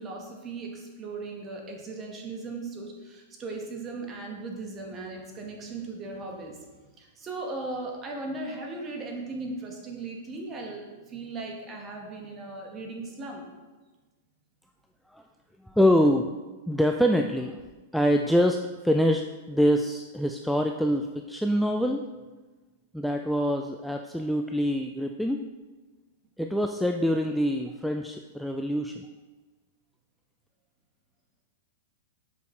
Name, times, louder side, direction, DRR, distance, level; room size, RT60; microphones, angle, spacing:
voice 1, 0.0-6.6 7.0-13.5, right 3 dB, 25° right, 1 dB, 1.3 m, -37 dB
voice 2, 15.6-16.3 16.7-17.6 17.9-22.0 22.9-25.4 26.4-29.0, equal, ahead, 3 dB, 0.3 m, -25 dB
6.9 x 5.1 x 3.2 m, 1.3 s
hypercardioid pair, 120°, 0 cm